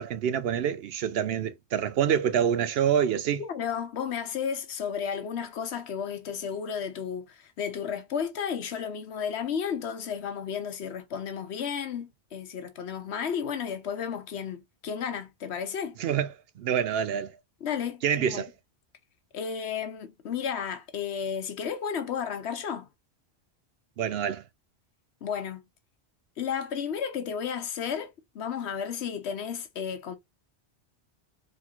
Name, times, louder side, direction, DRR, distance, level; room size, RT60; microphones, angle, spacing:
voice 1, 0.0-3.4 16.0-16.3 16.6-17.3 18.0-18.5 24.0-24.4, right 8 dB, 70° right, 0.8 m, -26 dB
voice 2, 3.4-16.0 17.6-18.4 19.3-22.9 25.2-25.6 26.4-30.2, left 7 dB, 75° left, 1.1 m, -33 dB
4.2 x 2.3 x 4.3 m
omnidirectional pair, 1.1 m